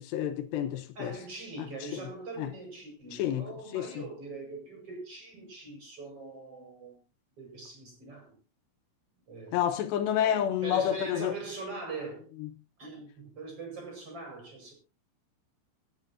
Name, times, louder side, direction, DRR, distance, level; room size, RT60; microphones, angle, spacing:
voice 1, 0.0-1.2 1.6-2.1 2.4-2.5 3.1-4.0 9.5-11.3 12.4-12.5, left 10 dB, 80° left, 3.4 m, -30 dB
voice 2, 1.0-7.0 7.4-8.4 9.3-9.6 10.2-12.3 12.8-14.7, right 3 dB, 35° right, 5.9 m, -42 dB
25.5 x 8.9 x 2.8 m
omnidirectional pair, 4.9 m